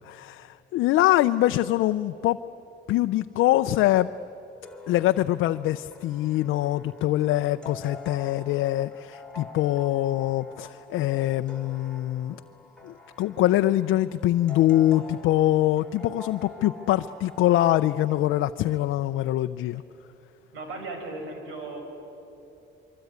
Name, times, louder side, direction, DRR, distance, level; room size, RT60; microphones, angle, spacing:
voice 1, 0.0-2.4 2.9-4.1 4.9-12.4 12.8-19.8, left 14 dB, 90° left, 9 dB, 0.5 m, -24 dB
sound 1, 4.6-18.3, left 3 dB, 5° left, 2.9 m, -46 dB
voice 2, 20.5-21.8, right 2 dB, 90° right, 4 dB, 5.4 m, -36 dB
24.5 x 24.0 x 9.5 m, 2.8 s
cardioid pair, 90°, 20 cm